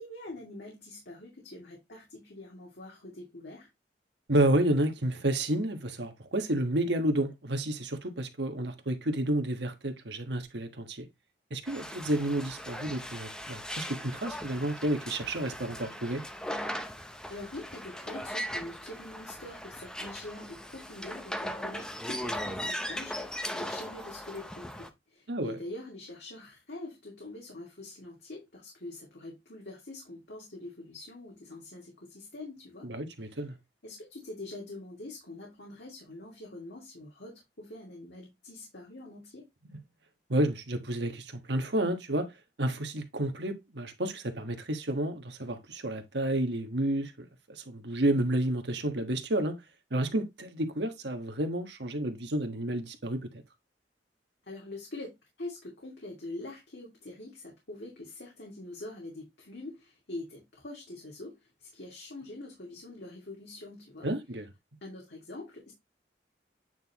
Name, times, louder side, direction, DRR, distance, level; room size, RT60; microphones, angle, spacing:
voice 1, 0.0-3.7 17.3-32.9 33.2-33.4 33.8-39.5 54.4-55.1 55.4-64.1 64.8-65.7, left 2 dB, 65° left, 2.2 m, -44 dB
voice 2, 4.3-11.1 11.5-16.2 25.3-25.6 32.8-33.5 40.3-42.3 42.6-47.1 47.5-49.5 49.9-53.3 64.0-64.5, right 1 dB, 70° right, 1.4 m, -30 dB
sound 1, 11.7-24.9, equal, 5° left, 0.7 m, -39 dB
9.1 x 4.0 x 3.0 m
head